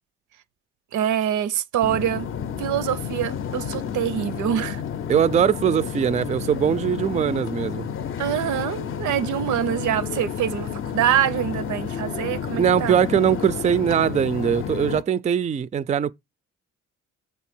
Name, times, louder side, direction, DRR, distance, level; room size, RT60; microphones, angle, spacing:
voice 1, 0.9-2.3 2.6-4.8 8.2-13.0, right 10 dB, 75° right, 0.6 m, -25 dB
sound 1, 1.8-15.0, left 8 dB, 45° left, 0.6 m, -31 dB
voice 2, 5.1-7.9 12.6-16.1, right 8 dB, 25° right, 0.3 m, -21 dB
7.3 x 3.3 x 5.9 m
cardioid pair, 105°, 30 cm